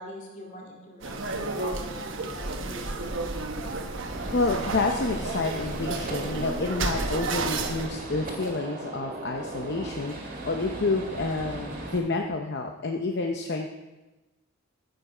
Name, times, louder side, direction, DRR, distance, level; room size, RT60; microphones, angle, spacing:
voice 1, 0.0-3.3, left 1 dB, 35° left, -2 dB, 2.4 m, -43 dB
sound 1, 1.0-7.9, right 3 dB, 60° right, 1.1 m, -32 dB
Gunshot gunfire, 4.1-12.0, right 1 dB, 40° right, 2.0 m, -37 dB
voice 2, 4.3-10.2 10.4-13.7, left 3 dB, 50° left, 3 dB, 0.7 m, -29 dB
13.5 x 8.0 x 4.9 m, 1.1 s
head